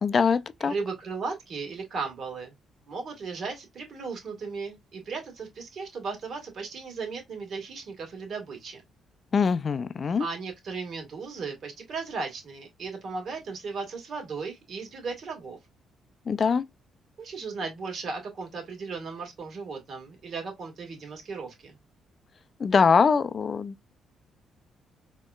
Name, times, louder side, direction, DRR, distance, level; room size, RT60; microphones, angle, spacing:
voice 1, 0.0-0.7 9.3-10.3 16.3-16.6 22.6-23.9, left 5 dB, 45° left, 0.4 m, -23 dB
voice 2, 0.6-2.5 2.9-8.8 10.2-15.6 17.2-21.8, right 4 dB, 60° right, 1.9 m, -36 dB
4.3 x 2.9 x 2.3 m
cardioid pair, 90°, 0 cm